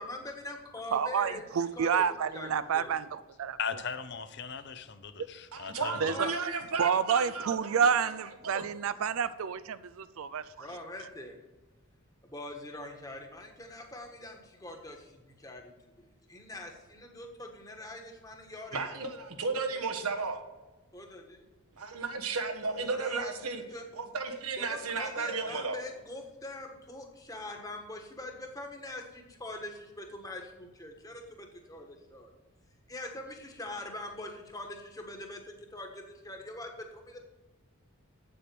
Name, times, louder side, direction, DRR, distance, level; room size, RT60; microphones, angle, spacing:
voice 1, 0.0-1.4 1.7-2.0 2.3-2.5 2.7-2.9 5.8-6.4 6.7-7.0 10.6-11.3 12.2-18.9 20.9-21.5 22.6-23.3 23.7-23.9 24.6-32.3 32.9-37.2, left 1 dB, 15° left, 1.4 m, -43 dB
voice 2, 0.9-3.6 6.0-6.3 6.8-10.7, right 7 dB, 70° right, 0.4 m, -29 dB
voice 3, 3.6-6.2, left 6 dB, 50° left, 0.7 m, -38 dB
voice 4, 5.5-6.9 7.1-7.5 8.4-8.6 18.7-20.4 21.8-23.6 23.9-25.8, right 4 dB, 85° right, 1.4 m, -33 dB
8.3 x 7.6 x 6.9 m
head